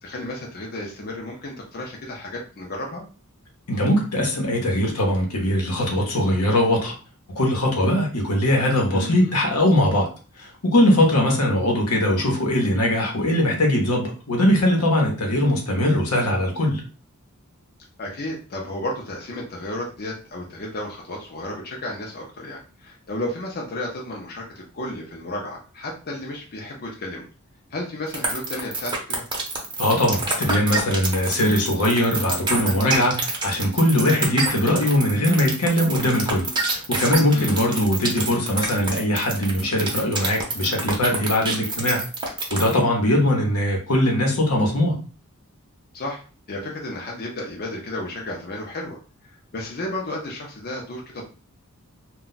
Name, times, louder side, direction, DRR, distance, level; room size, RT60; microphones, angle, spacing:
voice 1, 0.0-3.0 8.9-9.3 18.0-27.3 27.7-29.2 37.3-37.6 45.9-46.2 46.5-49.0 49.2-51.2, left 1 dB, 45° left, -1 dB, 0.6 m, -33 dB
voice 2, 3.7-6.9 7.4-10.1 10.4-16.8 29.8-42.0 42.5-45.0, left 1 dB, 85° left, 0 dB, 0.9 m, -21 dB
sound 1, 28.1-42.8, right 3 dB, 20° right, 0.7 m, -27 dB
2.3 x 2.2 x 3.9 m, 0.37 s
head